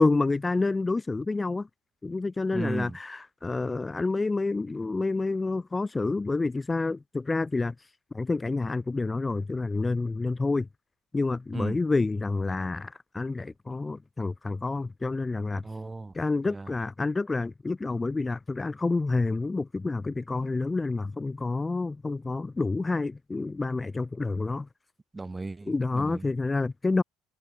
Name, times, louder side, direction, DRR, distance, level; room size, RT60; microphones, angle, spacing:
voice 1, 0.0-1.7 2.0-7.7 8.1-10.7 11.1-15.6 16.1-24.7 25.7-27.0, left 3 dB, 10° left, 1.4 m, -28 dB
voice 2, 2.5-3.0 11.5-11.8 15.5-16.1 16.4-16.7 25.1-26.3, right 3 dB, 10° right, 1.9 m, -35 dB
cardioid pair, 155°, 0 cm